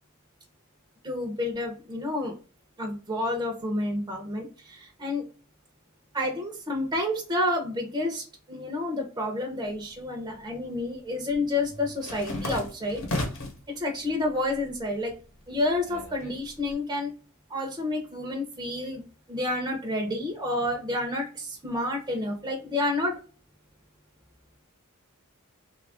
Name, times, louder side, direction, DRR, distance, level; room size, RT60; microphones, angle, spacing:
voice 1, 1.0-2.4 2.8-5.2 6.1-13.1 13.8-15.1 15.5-17.1 17.5-19.0 19.3-23.2, left 1 dB, 20° right, 0 dB, 0.6 m, -29 dB
sound 1, 9.7-10.5 10.8-13.7 14.1-14.8 15.1-16.7, left 1 dB, 60° left, 1.0 m, -35 dB
3.2 x 2.4 x 3.4 m, 0.37 s
head